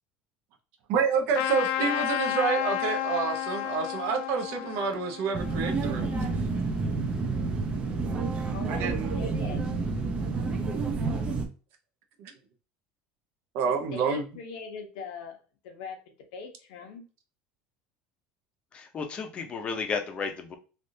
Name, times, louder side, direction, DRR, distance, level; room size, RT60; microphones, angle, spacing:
voice 1, 0.9-6.1 8.7-9.1 12.2-12.3 13.5-14.3, right 6 dB, 60° right, 4 dB, 0.8 m, -28 dB
Trumpet, 1.3-6.4, left 12 dB, 65° left, 0.4 m, -32 dB
voice 2, 1.8-2.1 8.5-9.6 13.6-15.4 15.6-17.0, left 5 dB, 85° left, 4 dB, 0.9 m, -41 dB
sound 1, 5.3-11.5, right 4 dB, 25° right, 0.6 m, -29 dB
voice 3, 18.7-20.6, left 5 dB, 25° left, 5 dB, 0.6 m, -33 dB
3.4 x 2.5 x 2.7 m, 0.35 s
cardioid pair, 150°, 4 cm